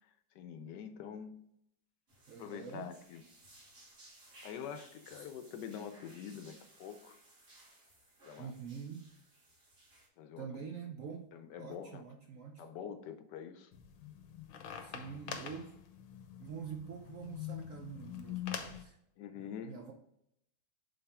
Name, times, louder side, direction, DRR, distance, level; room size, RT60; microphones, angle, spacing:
voice 1, 0.3-1.4 2.4-3.2 4.4-7.2 8.2-8.5 10.2-10.5 11.3-12.0 12.6-13.7 19.2-19.8, left 8 dB, 70° left, 9 dB, 1.2 m, -45 dB
sound 1, 2.1-10.1, right 1 dB, 40° right, 2.4 m, -60 dB
voice 2, 2.3-2.9 5.1-5.3 8.4-9.1 10.4-11.3 11.6-12.7 14.8-15.7 16.4-19.0 19.4-19.9, right 6 dB, 65° right, 3 dB, 0.8 m, -46 dB
sound 2, 13.7-18.8, left 9 dB, 90° left, 1.5 m, -44 dB
7.9 x 4.0 x 3.5 m, 0.77 s
omnidirectional pair, 2.0 m